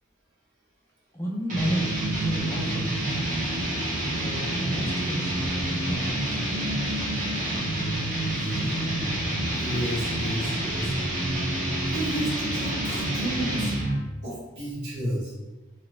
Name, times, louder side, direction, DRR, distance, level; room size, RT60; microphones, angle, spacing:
voice 1, 1.1-2.9 4.0-6.6 8.6-9.0, equal, 15° left, -3 dB, 0.4 m, -33 dB
sound 1, 1.5-14.0, right 1 dB, 40° right, 0.7 m, -28 dB
voice 2, 8.3-9.0 9.5-10.9 11.9-13.7 14.2-15.3, equal, 60° right, -8 dB, 1.4 m, -32 dB
2.9 x 2.0 x 3.1 m, 1.1 s
head